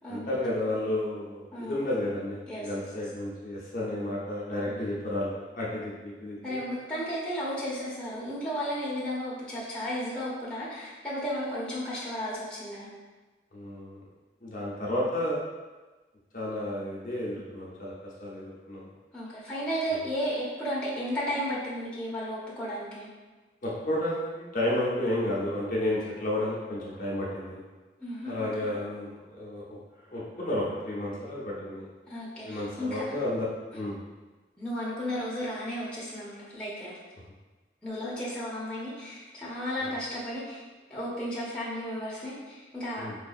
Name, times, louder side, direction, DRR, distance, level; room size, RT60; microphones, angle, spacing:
voice 1, 0.1-6.6 13.5-14.0 14.4-15.4 16.3-18.9 19.9-20.0 23.6-27.6 28.2-31.9 32.4-34.0 39.8-39.9 43.0-43.2, left 1 dB, 45° left, -6 dB, 0.7 m, -32 dB
voice 2, 1.5-1.9 2.5-2.7 4.7-4.8 6.4-12.9 19.1-23.1 28.0-28.3 28.6-28.7 32.1-33.0 34.6-37.0 37.8-40.6 40.9-43.1, equal, 5° left, -9 dB, 0.8 m, -34 dB
4.9 x 2.7 x 2.4 m, 1.2 s
head